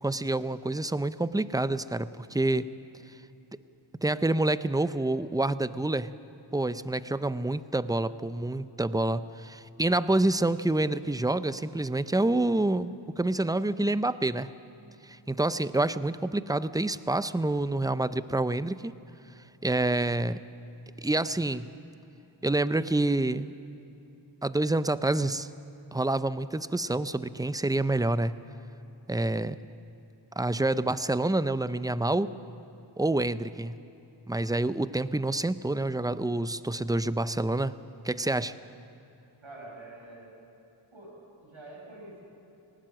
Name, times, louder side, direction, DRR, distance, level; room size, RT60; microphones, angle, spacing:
voice 1, 0.0-2.7 4.0-6.1 6.5-14.5 15.0-18.9 19.6-20.4 21.0-21.7 22.4-23.5 24.4-25.5 25.9-28.4 29.1-29.6 30.4-32.3 33.0-33.8 34.3-37.7 38.0-38.5, right 2 dB, 10° right, 14 dB, 0.5 m, -27 dB
voice 2, 39.4-40.3 40.9-41.2 41.4-42.2, right 2 dB, 70° right, -2 dB, 6.1 m, -46 dB
19.0 x 18.0 x 7.6 m, 2.9 s
wide cardioid pair, 45°, 49 cm